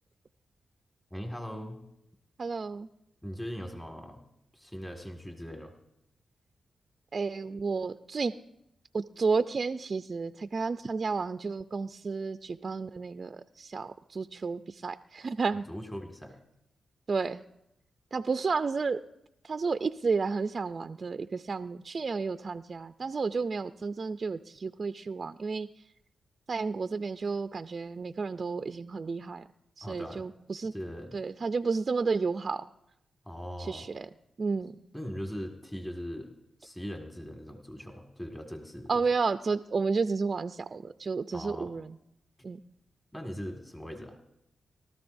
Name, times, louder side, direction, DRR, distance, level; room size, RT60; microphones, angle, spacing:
voice 1, 1.1-1.8 3.2-4.2 4.5-5.7 15.7-16.3 29.8-30.3 30.7-31.2 33.3-33.9 34.9-36.3 36.6-39.0 41.3-41.7 43.1-44.2, equal, 10° left, 3 dB, 1.9 m, -40 dB
voice 2, 2.4-2.9 7.1-8.3 8.9-15.7 17.1-17.4 18.1-19.0 19.4-25.7 26.5-29.4 29.8-30.7 31.1-32.6 33.6-34.1 34.4-34.7 38.9-42.0 42.4-42.6, right 4 dB, 50° right, 10 dB, 0.4 m, -31 dB
23.0 x 13.0 x 2.6 m, 0.81 s
cardioid pair, 55°, 0 cm